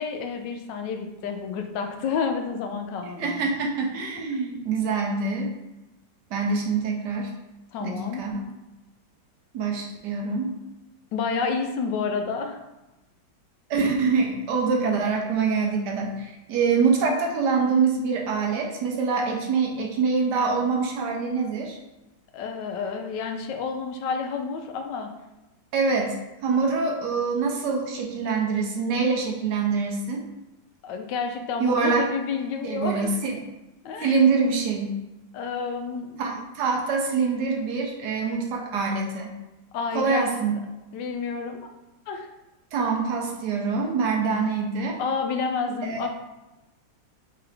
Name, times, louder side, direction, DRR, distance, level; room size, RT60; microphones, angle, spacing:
voice 1, 0.0-3.4 4.2-4.4 7.7-8.2 11.1-12.6 22.3-25.1 30.8-33.1 33.8-34.2 35.3-36.2 39.7-40.3 40.9-41.7 42.1-42.3 45.0-46.1, left 5 dB, 75° left, 5 dB, 1.2 m, -29 dB
voice 2, 3.2-5.5 6.3-7.3 7.8-8.4 9.5-10.5 13.7-21.8 25.7-26.2 26.4-30.2 31.6-32.0 32.6-33.3 34.0-35.0 36.2-39.4 39.9-40.5 42.7-45.0 45.8-46.1, right 5 dB, 70° right, 0 dB, 1.1 m, -25 dB
3.8 x 3.8 x 3.3 m, 1.0 s
omnidirectional pair, 2.0 m